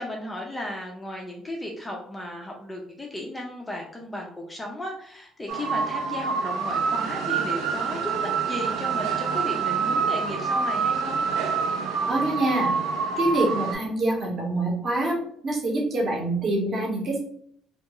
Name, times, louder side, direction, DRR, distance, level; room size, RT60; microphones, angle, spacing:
voice 1, 0.0-11.3, left 1 dB, 10° left, 0 dB, 0.3 m, -35 dB
sound 1, 5.5-13.8, right 5 dB, 85° right, 0.4 m, -26 dB
voice 2, 12.0-12.7 13.2-15.2 15.4-17.2, right 2 dB, 35° right, -1 dB, 0.7 m, -25 dB
2.2 x 2.2 x 2.8 m, 0.64 s
cardioid pair, 165°, 0 cm